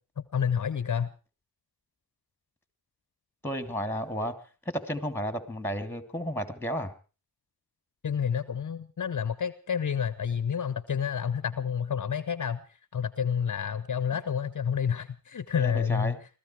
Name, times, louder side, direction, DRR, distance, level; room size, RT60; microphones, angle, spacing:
voice 1, 0.3-1.1 8.0-16.2, left 7 dB, 55° left, 15 dB, 0.8 m, -29 dB
voice 2, 3.4-4.3 4.6-6.9 15.6-16.2, equal, 5° left, 9 dB, 3.1 m, -32 dB
21.5 x 14.0 x 4.7 m, 0.36 s
cardioid pair, 45°, 37 cm